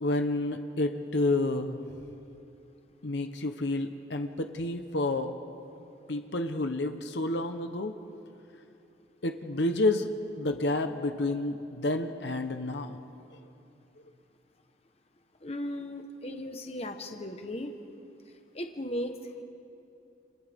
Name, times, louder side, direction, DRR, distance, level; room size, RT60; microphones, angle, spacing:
voice 1, 0.0-1.8 3.0-5.3 6.1-7.9 9.2-10.1 10.4-13.0, left 2 dB, 65° left, 6 dB, 1.0 m, -29 dB
voice 2, 15.4-17.7 18.5-19.1, left 1 dB, 30° left, 5 dB, 1.1 m, -36 dB
29.5 x 29.0 x 3.6 m, 2.7 s
head